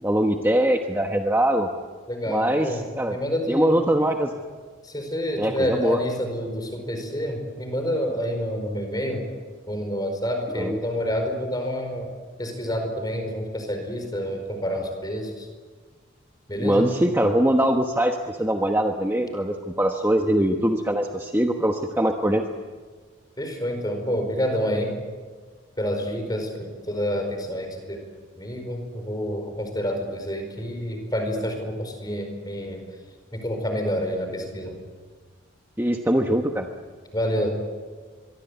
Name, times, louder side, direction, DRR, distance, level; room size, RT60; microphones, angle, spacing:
voice 1, 0.0-1.7 2.3-2.7 3.0-3.2 3.5-4.3 5.4-6.0 10.6-10.8 16.6-22.4 35.8-36.7, right 1 dB, 10° right, 3 dB, 1.1 m, -22 dB
voice 2, 2.1-3.9 4.8-9.2 9.7-12.1 12.4-15.5 16.5-16.9 23.4-24.9 25.8-28.0 28.4-32.8 33.3-34.7 37.1-37.8, equal, 20° left, 5 dB, 4.9 m, -28 dB
25.0 x 23.5 x 8.2 m, 1.5 s
head